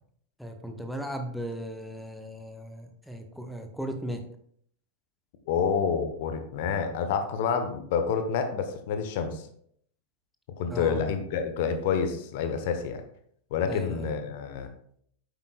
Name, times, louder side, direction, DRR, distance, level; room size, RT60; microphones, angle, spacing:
voice 1, 0.4-4.2 10.7-11.0 13.7-14.1, equal, ahead, 5 dB, 1.0 m, -37 dB
voice 2, 5.5-9.4 10.6-13.0 13.5-14.7, left 6 dB, 50° left, 7 dB, 1.0 m, -28 dB
9.4 x 8.1 x 2.4 m, 0.65 s
figure-of-eight pair, 90°, 0 cm